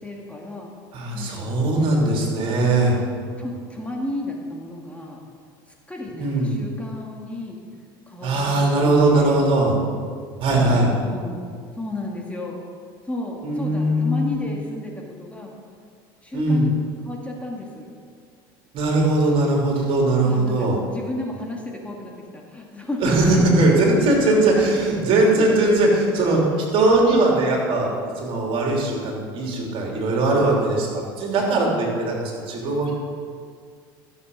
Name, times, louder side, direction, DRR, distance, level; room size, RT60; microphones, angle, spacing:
voice 1, 0.0-0.7 1.1-1.5 3.4-5.2 5.9-7.6 8.1-9.4 10.5-11.4 11.8-12.6 13.1-15.5 16.2-16.8 17.1-17.9 20.2-23.8 24.1-24.3 25.3-25.4 26.6-26.7, left 1 dB, 10° left, -1 dB, 2.0 m, -33 dB
voice 2, 0.9-2.9 6.2-6.5 8.2-9.7 10.4-10.9 13.4-14.5 16.3-16.7 18.7-20.8 23.0-26.4 26.7-32.9, right 2 dB, 50° right, -1 dB, 3.1 m, -20 dB
14.0 x 7.1 x 5.4 m, 2.1 s
hypercardioid pair, 90°, 12 cm